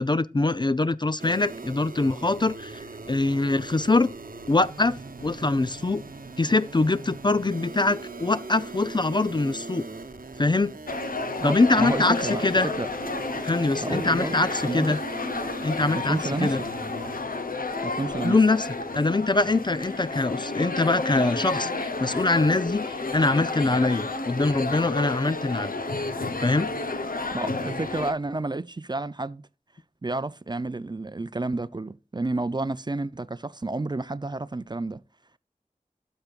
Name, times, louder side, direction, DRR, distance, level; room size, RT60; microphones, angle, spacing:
voice 1, 0.0-4.1 4.5-6.0 6.4-9.9 10.4-10.7 11.4-12.7 13.4-15.0 15.6-16.6 18.2-18.7 18.9-25.7 26.4-26.7, left 3 dB, 30° left, 0.4 m, -23 dB
sound 1, 1.2-17.2, right 3 dB, 90° right, 0.8 m, -40 dB
sound 2, 10.9-28.1, left 3 dB, 90° left, 0.8 m, -31 dB
voice 2, 11.4-12.9 13.8-15.0 15.9-16.5 17.8-18.4 27.3-29.5 30.0-35.0, right 2 dB, 30° right, 0.4 m, -30 dB
12.0 x 5.9 x 2.4 m
wide cardioid pair, 45°, 14 cm